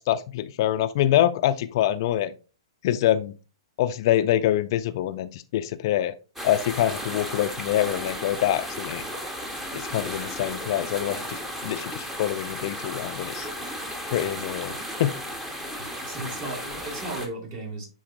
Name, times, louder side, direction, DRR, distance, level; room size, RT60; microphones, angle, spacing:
voice 1, 0.0-2.3 2.8-3.3 3.8-6.1 6.4-9.0 9.7-13.5 14.0-14.7 15.0-15.1, left 12 dB, 50° left, 0.4 m, -25 dB
sound 1, 6.4-17.3, equal, 10° right, 1.0 m, -34 dB
voice 2, 15.5-17.9, right 2 dB, 40° right, 2.8 m, -36 dB
10.0 x 4.0 x 2.5 m
hypercardioid pair, 120°, 3 cm